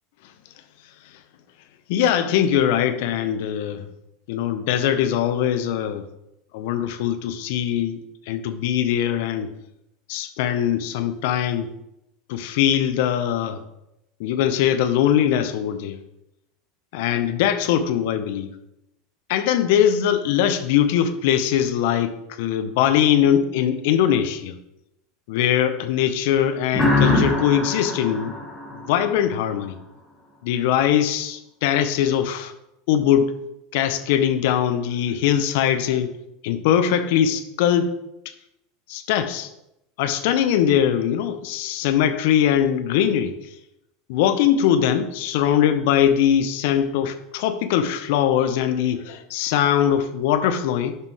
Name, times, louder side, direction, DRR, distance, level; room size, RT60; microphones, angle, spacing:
voice 1, 1.9-3.9 4.3-6.0 6.5-9.5 10.1-11.7 12.3-13.6 14.2-16.0 16.9-18.5 19.3-24.5 25.3-28.3 28.7-29.8 30.4-32.5 32.9-33.4 33.7-36.2 36.4-37.9 38.9-39.5 40.0-43.4 44.1-51.0, left 9 dB, 65° left, 9 dB, 0.8 m, -21 dB
sound 1, 26.7-29.4, left 2 dB, 5° left, 2.3 m, -23 dB
11.0 x 5.4 x 3.2 m, 0.85 s
hypercardioid pair, 85°, 0 cm